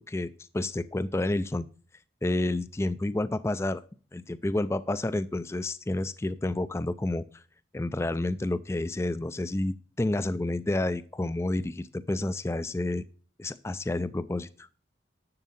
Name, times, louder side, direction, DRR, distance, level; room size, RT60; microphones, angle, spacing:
voice 1, 0.0-1.7 2.2-3.8 4.1-7.4 7.7-13.0 13.4-14.7, left 2 dB, 15° left, 14 dB, 0.3 m, -30 dB
10.5 x 7.4 x 4.1 m, 0.39 s
head